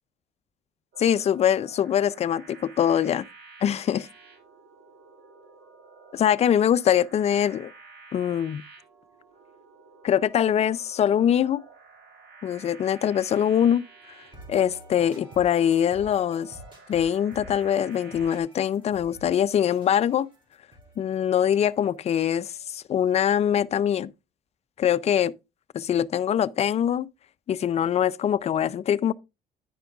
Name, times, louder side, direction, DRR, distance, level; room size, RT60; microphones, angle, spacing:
sound 1, 0.9-18.4, right 4 dB, 70° right, 2.3 m, -51 dB
voice 1, 1.0-3.2 3.6-4.0 6.1-7.7 8.1-8.6 10.0-11.6 12.4-13.8 14.5-16.5 16.9-20.3 21.0-24.1 24.8-25.3 25.7-27.1 27.5-29.1, left 9 dB, 40° left, 0.4 m, -23 dB
sound 2, 14.3-22.2, right 1 dB, 30° right, 3.1 m, -49 dB
10.0 x 5.1 x 3.4 m
cardioid pair, 110°, 17 cm